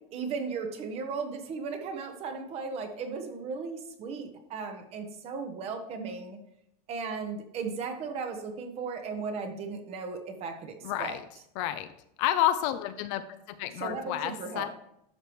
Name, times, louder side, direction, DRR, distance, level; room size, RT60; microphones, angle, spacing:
voice 1, 0.1-6.4 6.9-11.4 13.7-14.7, right 5 dB, 30° right, 6 dB, 1.0 m, -36 dB
voice 2, 10.8-11.2 11.6-11.9 12.2-14.7, left 12 dB, 50° left, 11 dB, 0.5 m, -30 dB
11.5 x 4.9 x 3.1 m, 0.78 s
supercardioid pair, 150°, 20 cm